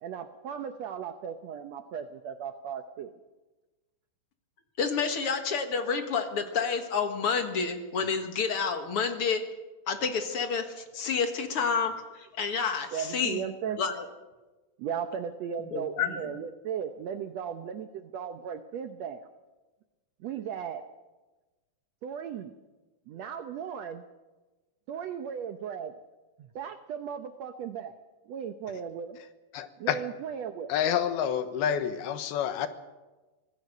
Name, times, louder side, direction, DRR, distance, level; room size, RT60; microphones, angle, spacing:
voice 1, 0.0-3.1 12.9-13.8 14.8-19.3 20.2-20.8 22.0-22.5 23.1-24.0 24.9-25.9 26.4-27.9 28.3-29.2 29.8-30.7, right 8 dB, 85° right, 8 dB, 1.5 m, -36 dB
voice 2, 4.8-9.4 9.9-13.4 13.8-14.0 15.7-16.3, left 5 dB, 55° left, 7 dB, 1.8 m, -29 dB
voice 3, 29.5-30.0 30.7-32.7, left 9 dB, 85° left, 10 dB, 3.1 m, -28 dB
25.0 x 17.5 x 6.6 m, 1.2 s
omnidirectional pair, 4.3 m